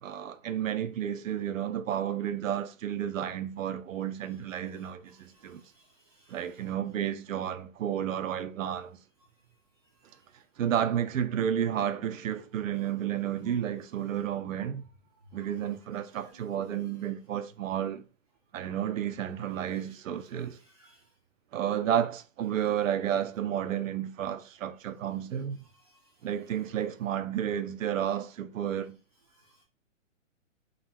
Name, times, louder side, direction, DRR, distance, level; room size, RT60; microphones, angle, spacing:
voice 1, 0.0-5.6 6.3-9.0 10.6-14.8 15.3-18.0 18.5-20.6 21.5-25.7 26.2-29.0, right 10 dB, 90° right, 0.6 m, -31 dB
voice 2, 5.3-6.4 16.1-16.3 20.6-21.0 25.8-26.0 29.4-29.6, right 1 dB, 30° right, 0.4 m, -60 dB
3.8 x 2.1 x 4.3 m
hypercardioid pair, 175°, 38 cm